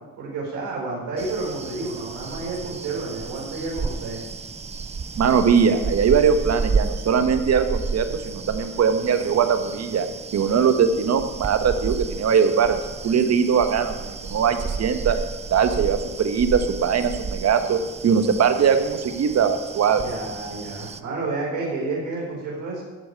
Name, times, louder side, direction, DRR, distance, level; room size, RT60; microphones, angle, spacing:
voice 1, 0.2-4.2 20.0-22.8, right 3 dB, 85° right, -3 dB, 4.5 m, -30 dB
sound 1, 1.2-21.0, right 4 dB, 20° right, 0.6 m, -32 dB
voice 2, 5.2-10.1 10.3-15.2 15.5-20.0, right 6 dB, 55° right, 8 dB, 1.3 m, -21 dB
14.5 x 4.9 x 8.5 m, 1.3 s
cardioid pair, 90°, 30 cm